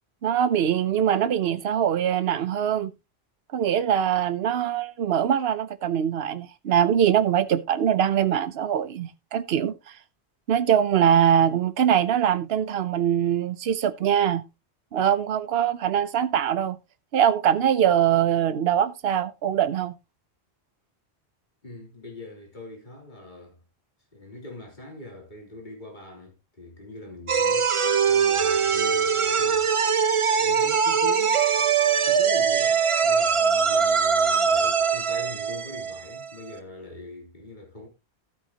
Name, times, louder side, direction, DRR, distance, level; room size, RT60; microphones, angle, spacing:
voice 1, 0.2-2.9 3.5-9.7 10.5-14.4 14.9-16.8 17.1-19.9, right 9 dB, 65° right, 1.0 m, -22 dB
voice 2, 21.6-23.6 24.1-30.1 30.3-31.4 32.0-37.9, left 2 dB, 45° left, 3.4 m, -42 dB
sound 1, 27.3-36.5, right 6 dB, 40° right, 0.5 m, -22 dB
13.0 x 8.1 x 2.8 m
omnidirectional pair, 1.1 m